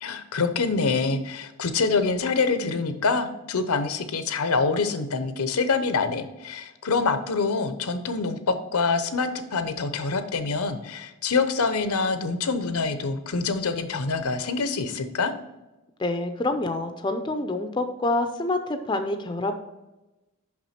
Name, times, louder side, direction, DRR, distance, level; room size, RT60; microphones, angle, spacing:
voice 1, 0.0-8.4 8.7-15.3, left 4 dB, 80° left, 10 dB, 0.7 m, -25 dB
voice 2, 16.0-19.5, left 2 dB, 20° left, 7 dB, 0.4 m, -27 dB
6.0 x 5.6 x 4.3 m, 1.0 s
head